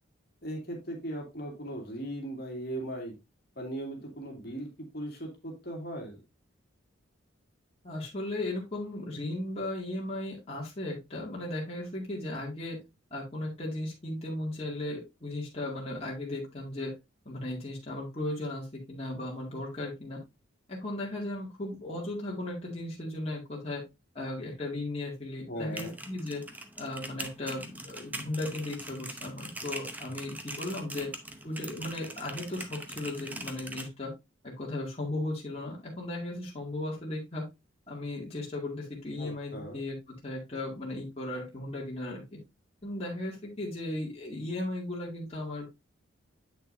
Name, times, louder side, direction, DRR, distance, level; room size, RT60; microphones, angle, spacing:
voice 1, 0.4-3.1 3.6-6.2 25.5-26.0 39.2-39.8, right 1 dB, 50° left, 1 dB, 2.3 m, -38 dB
voice 2, 7.8-12.8 13.1-16.9 17.3-20.2 20.7-23.8 24.1-26.4 26.8-31.1 31.4-34.1 34.4-37.4 37.9-40.0 40.2-42.4 42.8-45.6, left 1 dB, 30° left, -4 dB, 2.0 m, -36 dB
sound 1, 25.6-33.9, right 1 dB, 10° right, 0.7 m, -42 dB
8.1 x 6.5 x 2.6 m, 0.23 s
head